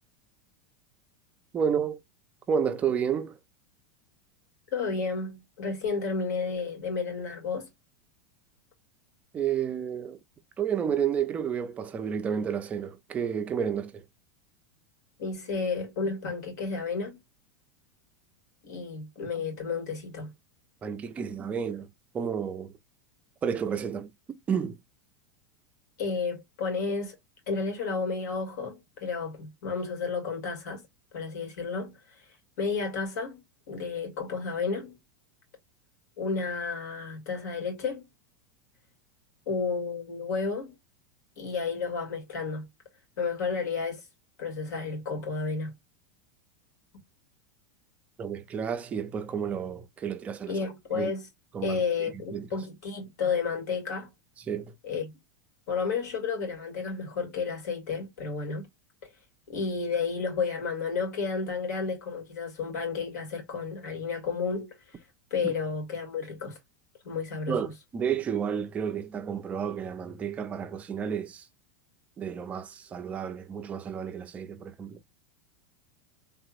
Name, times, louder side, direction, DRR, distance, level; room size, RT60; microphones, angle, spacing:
voice 1, 1.5-2.0 2.5-3.4 9.3-10.2 10.6-14.0 20.8-21.9 22.1-22.7 23.4-24.1 24.5-24.8 48.2-50.6 50.9-51.1 51.5-52.5 54.5-54.7 65.4-65.5 67.5-71.5 72.2-75.0, right 7 dB, 15° right, 0.4 m, -31 dB
voice 2, 4.7-7.7 15.2-17.2 18.6-20.3 26.0-27.2 27.5-30.8 31.1-32.0 32.6-35.0 36.2-38.1 39.5-40.8 41.4-42.7 43.2-44.0 44.4-45.7 50.5-51.3 51.6-54.1 54.8-55.1 55.7-58.7 59.5-64.7 65.3-66.6 67.0-67.6, left 5 dB, 75° left, 2.3 m, -31 dB
3.5 x 2.9 x 2.4 m
supercardioid pair, 165°, 9 cm